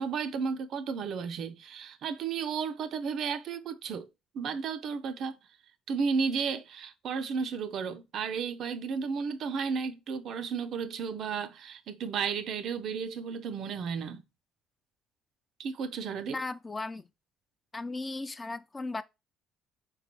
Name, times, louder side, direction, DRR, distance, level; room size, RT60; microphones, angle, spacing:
voice 1, 0.0-4.1 4.3-5.3 5.9-14.2 15.6-16.4, right 5 dB, 60° right, 0.4 m, -33 dB
voice 2, 16.3-17.1 17.7-19.0, left 3 dB, 25° left, 0.3 m, -36 dB
3.7 x 3.0 x 2.9 m
supercardioid pair, 70°, 0 cm